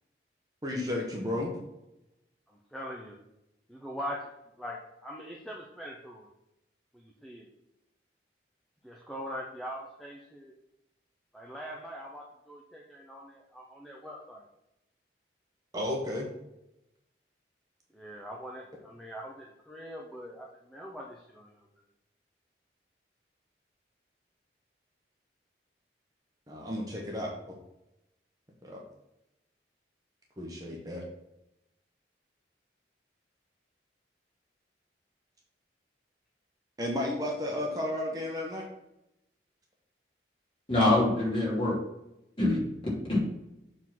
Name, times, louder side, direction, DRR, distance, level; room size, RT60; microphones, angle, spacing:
voice 1, 0.6-1.5 15.7-16.3 26.5-27.6 28.6-28.8 30.4-31.0 36.8-38.7, left 1 dB, 20° right, -1 dB, 1.0 m, -33 dB
voice 2, 2.5-3.2 3.7-4.3 4.6-6.3 6.9-7.5 8.8-10.5 11.3-14.4 17.9-21.7, equal, ahead, -2 dB, 0.7 m, -42 dB
voice 3, 40.7-41.8 42.4-42.6 43.1-43.2, left 2 dB, 30° left, -6 dB, 2.8 m, -24 dB
7.0 x 3.8 x 6.0 m, 0.89 s
head